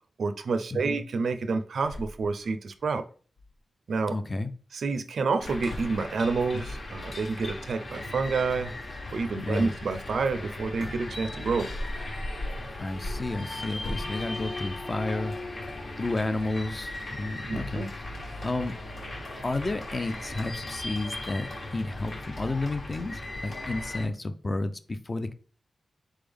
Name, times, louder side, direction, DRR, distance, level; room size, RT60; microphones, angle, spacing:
voice 1, 0.2-3.0 3.9-4.2 4.7-8.7 9.1-11.7 17.5-17.9, right 4 dB, 70° right, 9 dB, 0.4 m, -28 dB
sound 1, 1.8-2.9 3.1-3.2 3.4-3.6 5.4-6.1 7.4-7.8 10.7-11.9 12.8-12.9 13.6-14.3, left 1 dB, 70° left, 1.0 m, -41 dB
voice 2, 4.1-4.5 9.4-9.7 12.8-18.0 18.4-18.8 19.4-25.3, left 2 dB, 25° left, 9 dB, 0.4 m, -32 dB
sound 2, 5.4-24.1, left 2 dB, 45° left, 1.1 m, -37 dB
4.2 x 3.5 x 3.4 m, 0.40 s
wide cardioid pair, 175°, 0 cm